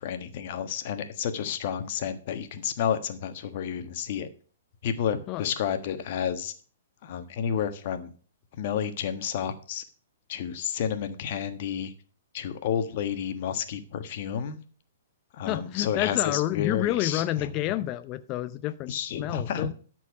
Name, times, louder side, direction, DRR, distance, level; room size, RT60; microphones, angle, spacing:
voice 1, 0.0-4.3 4.8-6.5 7.0-8.1 8.6-9.8 10.3-11.9 12.3-14.6 15.3-17.5 18.9-19.7, left 8 dB, 50° left, 1.3 m, -30 dB
voice 2, 15.4-19.7, left 14 dB, 35° left, 0.6 m, -29 dB
13.0 x 4.6 x 6.0 m
hypercardioid pair, 130°, 0 cm